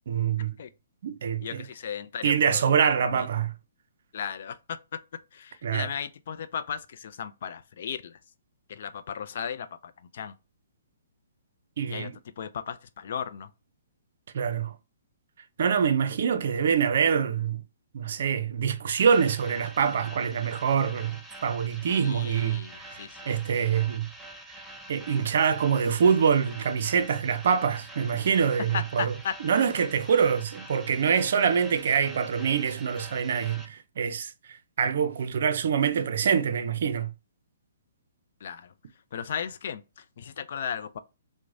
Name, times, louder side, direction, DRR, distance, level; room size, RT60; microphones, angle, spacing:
voice 1, 0.1-0.5 1.0-1.7 2.2-3.5 5.6-5.9 11.8-12.2 14.3-14.7 15.6-17.6 17.9-23.0 23.3-24.1 24.9-29.1 29.4-37.1, right 7 dB, 60° right, 0.5 m, -25 dB
voice 2, 1.4-2.6 3.0-3.3 4.1-4.8 5.3-8.2 8.7-10.3 11.9-12.1 12.4-13.5 22.0-23.4 28.7-29.4 38.4-38.7 39.1-41.0, left 8 dB, 60° left, 0.4 m, -36 dB
sound 1, 18.9-33.7, right 1 dB, ahead, 0.5 m, -46 dB
4.6 x 2.1 x 2.6 m
hypercardioid pair, 140°, 0 cm